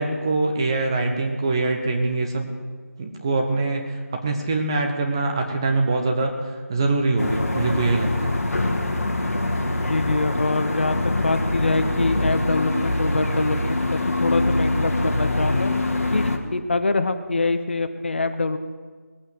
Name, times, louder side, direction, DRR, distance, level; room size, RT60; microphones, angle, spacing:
voice 1, 0.0-2.5 3.0-8.3, right 3 dB, 15° right, 2 dB, 0.9 m, -23 dB
sound 1, 7.2-16.4, left 2 dB, 60° left, 2.3 m, -24 dB
voice 2, 9.7-15.7 16.1-18.6, left 3 dB, 45° left, 9 dB, 0.9 m, -24 dB
19.5 x 8.9 x 7.8 m, 1.5 s
figure-of-eight pair, 170°, 9 cm